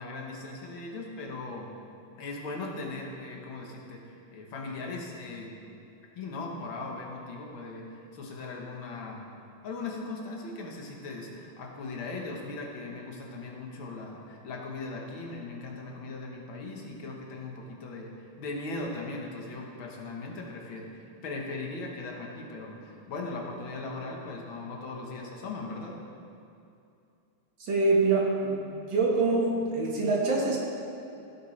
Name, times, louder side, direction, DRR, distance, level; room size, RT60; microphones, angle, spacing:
voice 1, 0.0-1.7 2.2-5.5 6.2-9.3 9.6-26.0, left 3 dB, 75° left, 0 dB, 2.0 m, -39 dB
voice 2, 27.6-28.6 28.9-30.6, right 3 dB, 65° right, -3 dB, 2.2 m, -25 dB
15.5 x 7.5 x 3.3 m, 2.6 s
omnidirectional pair, 2.2 m